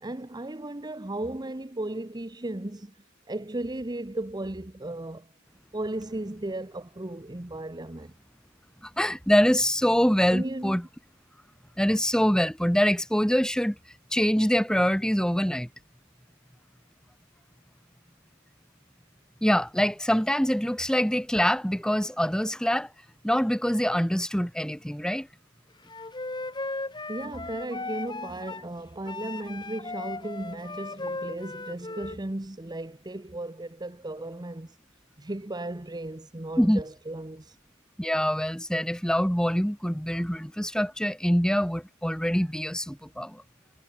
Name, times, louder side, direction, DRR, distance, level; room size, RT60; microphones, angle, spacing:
voice 1, 0.0-3.0 3.3-5.3 5.7-8.1 10.3-10.8 27.1-34.8 35.2-37.6, right 1 dB, 20° right, 1.0 m, -35 dB
voice 2, 8.8-10.8 11.8-13.8 14.1-15.7 19.4-22.9 23.2-25.3 36.6-36.8 38.0-43.4, equal, 5° left, 2.0 m, -24 dB
Wind instrument woodwind instrument, 25.9-28.7 29.1-32.2, left 2 dB, 25° left, 4.5 m, -37 dB
head